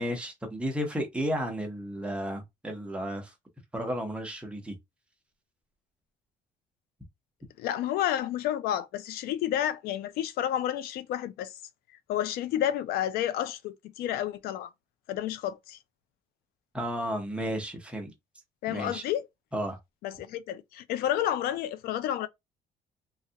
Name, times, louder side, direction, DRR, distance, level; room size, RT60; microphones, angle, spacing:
voice 1, 0.0-3.3 3.7-4.8 16.7-18.1 18.7-19.0 19.5-19.8, equal, 5° right, 0.7 m, -33 dB
voice 2, 7.6-11.5 12.1-14.7 15.1-15.8 18.6-19.3 20.0-22.3, left 11 dB, 85° left, 0.4 m, -30 dB
3.1 x 2.3 x 2.8 m
cardioid pair, 165°, 15 cm